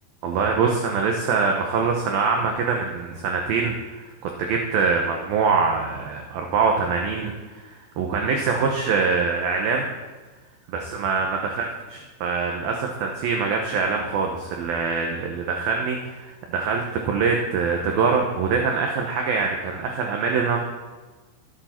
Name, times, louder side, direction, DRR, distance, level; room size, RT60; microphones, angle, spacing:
voice 1, 0.2-9.9 10.7-11.7 12.2-20.6, right 5 dB, 75° right, 2 dB, 2.3 m, -24 dB
23.5 x 8.8 x 4.4 m, 1.3 s
omnidirectional pair, 5.5 m